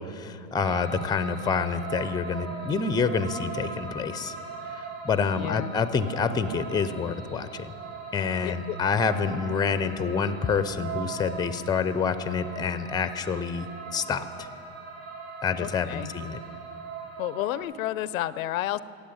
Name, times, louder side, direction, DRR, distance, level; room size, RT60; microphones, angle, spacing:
voice 1, 0.1-4.3 4.8-7.7 8.1-13.7 13.9-14.3 15.4-16.4, left 5 dB, 10° left, 12 dB, 0.5 m, -27 dB
sound 1, 0.6-17.6, right 4 dB, 65° right, 3.4 m, -40 dB
voice 2, 5.4-5.7 8.4-8.8 15.5-16.1 17.2-18.8, left 14 dB, 85° left, 17 dB, 0.6 m, -31 dB
13.5 x 8.3 x 8.7 m, 2.7 s
hypercardioid pair, 105°, 40 cm